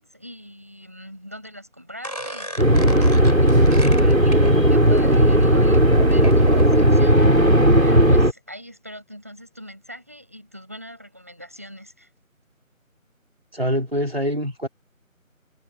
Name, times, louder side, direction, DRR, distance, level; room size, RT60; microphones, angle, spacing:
voice 1, 0.0-12.1, equal, 10° right, 7.3 m, -41 dB
sound 1, 2.0-7.3, equal, 30° left, 3.3 m, -35 dB
sound 2, 2.6-8.3, equal, 70° right, 4.6 m, -15 dB
voice 2, 13.5-14.7, equal, 45° right, 3.1 m, -24 dB
figure-of-eight pair, 175°, 42 cm